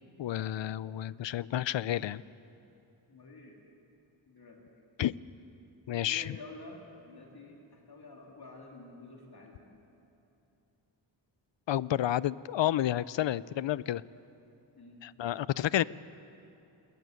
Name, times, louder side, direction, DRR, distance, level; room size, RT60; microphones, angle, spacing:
voice 1, 0.2-2.2 5.0-5.1 5.9-6.3 11.7-14.0 15.0-15.8, left 12 dB, 70° left, 19 dB, 0.6 m, -30 dB
voice 2, 3.1-3.6 4.3-4.6 6.1-9.8 14.8-15.0, left 2 dB, 55° left, -1 dB, 3.5 m, -49 dB
21.5 x 20.5 x 9.5 m, 2.8 s
wide cardioid pair, 150°, 46 cm